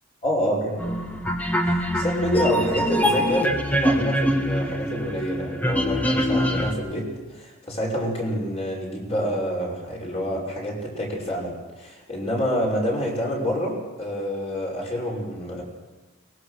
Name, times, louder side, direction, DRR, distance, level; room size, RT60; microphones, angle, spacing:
voice 1, 0.2-1.0 1.6-15.6, equal, 30° left, -2 dB, 5.6 m, -27 dB
sound 1, 0.8-6.7, equal, 10° left, 1.6 m, -24 dB
23.0 x 19.5 x 6.5 m, 1.3 s
head